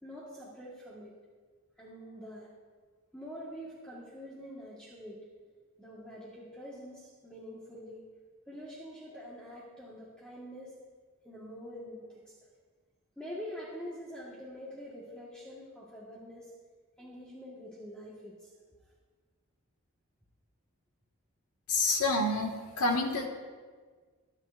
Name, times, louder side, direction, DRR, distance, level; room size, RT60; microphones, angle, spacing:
voice 1, 0.0-1.2 1.8-2.5 3.1-5.2 5.8-8.0 8.5-10.7 11.2-12.3 13.2-16.5 17.0-18.5, equal, 5° left, -7 dB, 1.5 m, -45 dB
voice 2, 21.7-23.3, left 2 dB, 90° left, 1 dB, 1.7 m, -28 dB
23.0 x 9.0 x 2.6 m, 1.5 s
head